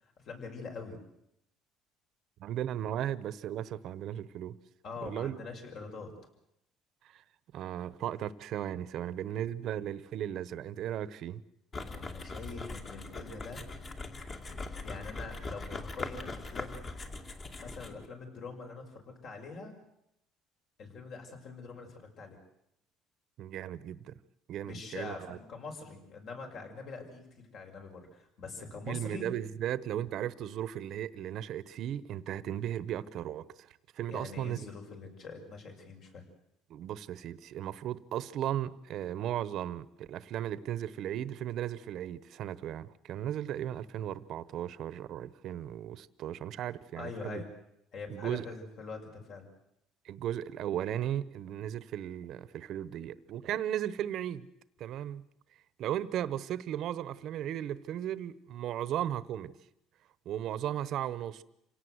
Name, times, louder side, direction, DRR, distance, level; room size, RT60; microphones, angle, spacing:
voice 1, 0.2-1.0 4.8-6.1 12.0-13.7 14.8-16.9 17.6-19.7 20.8-22.4 24.6-29.3 34.1-36.2 47.0-47.5 47.9-49.5, left 4 dB, 50° left, 6.1 m, -44 dB
voice 2, 2.4-4.6 5.0-5.4 7.0-7.2 7.5-11.4 23.4-24.1 24.5-25.4 28.9-34.6 36.7-47.4 48.1-48.5 50.0-54.5 54.8-55.2 55.8-59.5 60.2-61.4, right 11 dB, 55° right, 1.1 m, -36 dB
sound 1, 11.7-18.1, left 3 dB, 30° left, 2.6 m, -41 dB
27.0 x 18.0 x 8.1 m
cardioid pair, 130°, 0 cm